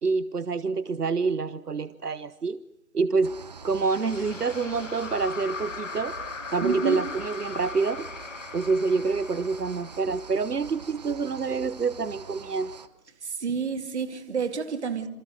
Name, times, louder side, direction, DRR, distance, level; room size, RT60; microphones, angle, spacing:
voice 1, 0.0-2.6 2.9-3.3 3.6-6.2 6.5-8.1 8.5-12.7, right 4 dB, 80° right, 1.1 m, -27 dB
sound 1, 3.2-12.9, right 6 dB, 25° right, 0.9 m, -44 dB
sound 2, 3.7-11.0, left 5 dB, 55° left, 1.5 m, -40 dB
voice 2, 6.6-7.1 13.2-15.1, right 5 dB, 45° right, 2.4 m, -29 dB
27.0 x 27.0 x 6.5 m
figure-of-eight pair, 150°, 46 cm